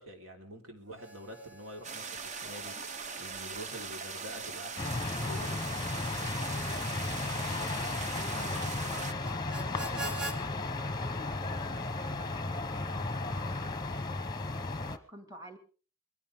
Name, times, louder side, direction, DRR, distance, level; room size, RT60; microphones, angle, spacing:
voice 1, 0.0-5.7 8.3-8.6, equal, 70° right, 3 dB, 4.0 m, -47 dB
Harmonica, 0.9-10.4, right 2 dB, 50° right, 1.9 m, -47 dB
sound 1, 1.8-9.1, right 5 dB, 35° right, 0.7 m, -41 dB
sound 2, 4.8-15.0, left 2 dB, 20° left, 0.9 m, -34 dB
voice 2, 6.0-7.4 7.7-14.4 14.8-15.6, right 1 dB, 15° right, 7 dB, 2.1 m, -52 dB
21.5 x 16.5 x 3.6 m, 0.37 s
head